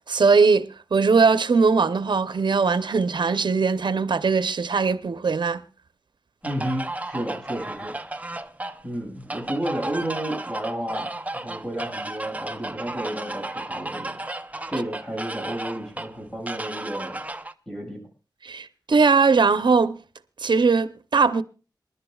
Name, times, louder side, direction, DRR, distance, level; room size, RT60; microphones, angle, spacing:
voice 1, 0.1-5.6 18.4-20.0 20.4-21.4, right 4 dB, 80° right, 0.7 m, -20 dB
voice 2, 6.4-8.0 8.8-14.2 14.7-17.2 17.7-18.0, right 1 dB, 5° left, 6.4 m, -32 dB
sound 1, 6.4-17.5, right 2 dB, 20° right, 0.7 m, -34 dB
27.0 x 11.5 x 2.3 m
wide cardioid pair, 95°, 8 cm